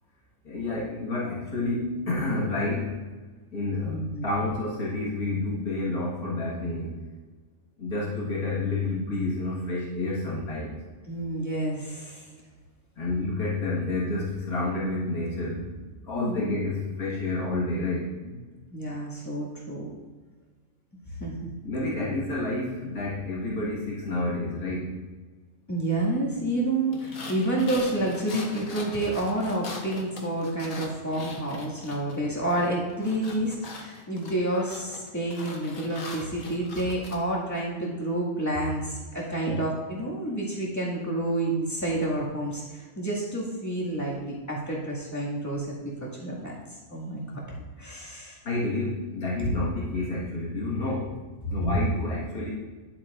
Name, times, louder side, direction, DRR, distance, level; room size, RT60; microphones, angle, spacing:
voice 1, 0.4-3.1 3.5-6.9 7.8-10.8 13.0-15.7 16.0-18.4 21.6-25.2 48.4-51.2 51.5-52.5, left 2 dB, 90° left, -6 dB, 2.2 m, -29 dB
voice 2, 3.8-4.3 11.1-12.3 16.1-16.5 18.7-19.9 20.9-21.5 25.7-47.2 47.8-48.4 51.6-51.8, right 1 dB, 10° left, -6 dB, 2.0 m, -29 dB
sound 1, 26.9-32.2 32.5-37.2, left 3 dB, 60° left, 1.5 m, -41 dB
11.0 x 7.7 x 2.5 m, 1.4 s
omnidirectional pair, 1.5 m